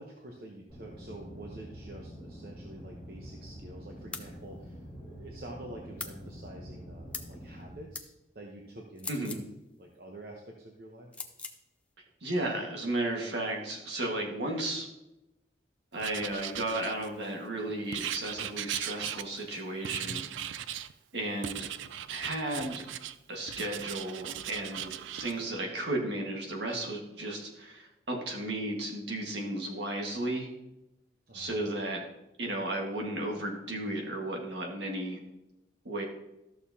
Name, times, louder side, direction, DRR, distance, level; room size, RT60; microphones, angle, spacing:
voice 1, 0.0-8.1 8.3-9.4 9.8-11.1 20.0-20.2 31.3-31.6, right 1 dB, 55° right, 0 dB, 0.9 m, -47 dB
sound 1, 0.7-7.7, equal, 25° right, 2.9 m, -46 dB
sound 2, 4.1-4.3 6.0-6.2 7.1-7.3 7.9-8.1 9.0-9.5 11.1-11.6, left 3 dB, 5° left, 0.4 m, -40 dB
voice 2, 9.1-9.4 12.2-14.9 15.9-20.6 21.1-21.7 22.1-22.8 23.3-30.5 31.3-32.0 32.4-35.2 35.8-36.0, right 1 dB, 70° right, 0 dB, 1.7 m, -34 dB
Writing, 16.0-17.3 17.9-19.5 19.8-20.9 21.4-23.2 23.5-25.3, right 10 dB, 85° right, 0.4 m, -38 dB
13.0 x 6.7 x 2.8 m, 0.93 s
head